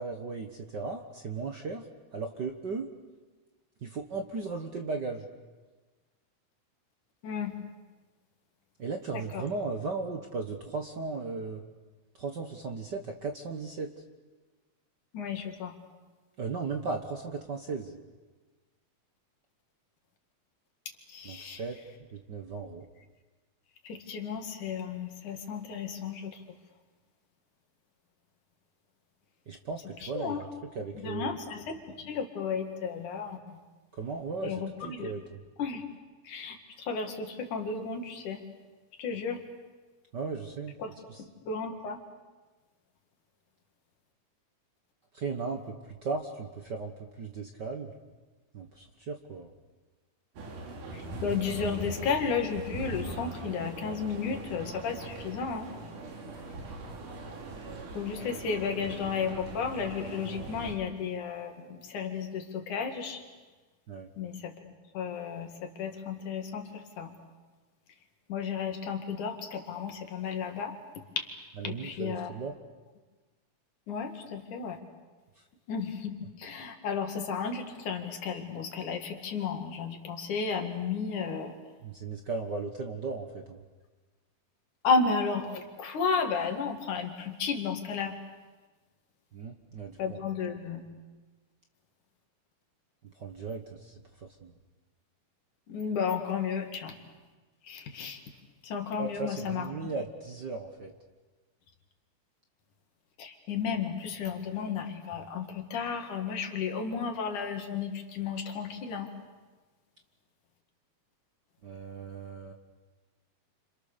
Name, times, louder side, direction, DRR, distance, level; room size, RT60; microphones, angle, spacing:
voice 1, 0.0-1.9 2.1-2.9 3.8-5.2 8.8-11.6 12.1-13.9 16.4-18.0 21.2-21.8 22.1-22.9 29.5-30.5 30.7-31.3 33.9-35.4 40.1-40.8 41.1-41.2 45.1-45.7 46.0-48.0 48.5-49.5 63.9-64.1 71.6-72.5 75.4-75.5 81.8-83.6 89.3-90.2 93.1-94.5 99.0-100.9 111.6-112.5, right 4 dB, 45° right, 4 dB, 1.5 m, -36 dB
voice 2, 7.2-7.6 9.1-9.4 15.1-15.8 21.1-21.6 23.8-26.4 30.0-30.4 30.9-33.6 34.4-35.1 35.6-35.8 36.2-38.4 39.0-39.4 40.8-40.9 41.2-42.0 50.9-55.7 58.0-63.2 64.2-67.1 68.3-71.3 71.6-72.3 73.9-74.8 75.7-81.6 84.8-88.2 90.0-90.8 95.7-97.0 97.6-98.2 98.6-99.7 103.2-109.1, left 5 dB, 80° left, 4 dB, 3.7 m, -33 dB
sound 1, 50.4-60.8, right 2 dB, 90° right, 4.3 m, -41 dB
30.0 x 26.5 x 6.9 m, 1.3 s
omnidirectional pair, 3.5 m